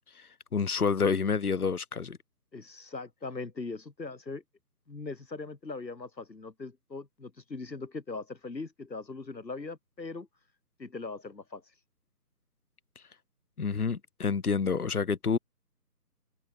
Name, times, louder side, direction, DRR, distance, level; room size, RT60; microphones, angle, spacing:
voice 1, 0.1-2.2 13.6-15.4, left 5 dB, 60° left, 2.3 m, -28 dB
voice 2, 2.5-4.4 4.9-10.3 10.8-11.6, left 3 dB, 80° left, 6.6 m, -40 dB
figure-of-eight pair, 165°, 50 cm